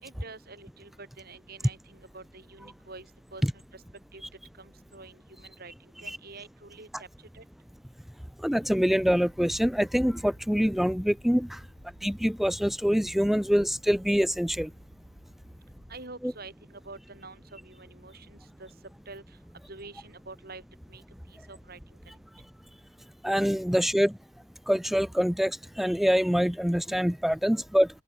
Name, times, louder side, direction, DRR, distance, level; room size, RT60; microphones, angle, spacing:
voice 1, 0.0-3.1 3.3-3.6 4.1-4.2 4.6-5.7 6.0-7.1 7.3-7.4 15.9-18.7 19.1-19.2 19.7-20.6 20.9-21.0 21.5-21.8, right 3 dB, 50° right, 6.2 m, -46 dB
voice 2, 8.4-11.6 12.0-14.7 16.2-16.3 23.2-24.1 24.7-27.9, equal, ahead, 0.5 m, -25 dB
sound 1, 9.0-16.0, equal, 85° right, 7.9 m, -55 dB
open air
head